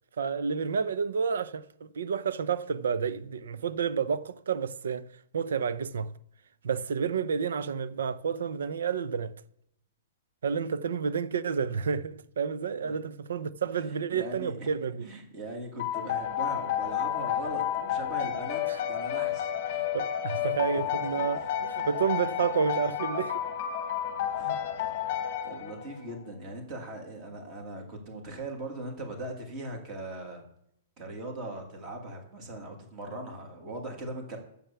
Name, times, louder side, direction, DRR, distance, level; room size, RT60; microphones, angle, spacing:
voice 1, 0.2-5.1 5.3-6.1 6.6-9.3 10.4-15.1 18.7-18.8 19.9-23.4 24.4-24.6, right 6 dB, 90° right, 0.7 m, -30 dB
voice 2, 13.7-19.5 20.4-20.5 20.8-21.5 24.3-25.2 25.4-30.4 31.0-34.4, right 1 dB, 20° right, 2.1 m, -40 dB
sound 1, 15.8-26.2, left 10 dB, 30° left, 1.1 m, -31 dB
9.1 x 7.1 x 6.9 m
hypercardioid pair, 180°, 0 cm